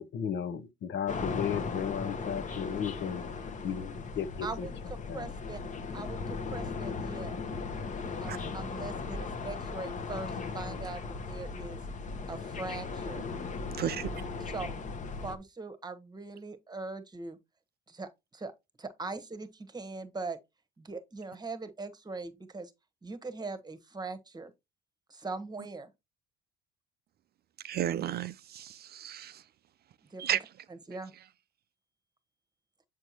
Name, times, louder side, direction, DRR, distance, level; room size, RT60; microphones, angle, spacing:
voice 1, 0.0-3.2 3.6-4.7 5.1-5.3, left 8 dB, 60° left, 0.9 m, -35 dB
sound 1, 1.1-15.4, left 4 dB, 35° left, 1.0 m, -37 dB
voice 2, 4.4-5.6 5.9-7.4 8.2-11.8 12.3-13.2 14.4-14.7 15.2-17.4 17.9-18.5 18.8-20.4 20.8-22.7 23.0-24.5 25.1-25.9 30.1-30.4 30.7-31.1, right 3 dB, 20° right, 1.1 m, -41 dB
voice 3, 13.8-14.1 27.6-29.3 30.2-30.4, right 11 dB, 50° right, 0.4 m, -33 dB
7.7 x 4.5 x 2.8 m
supercardioid pair, 85°, 21 cm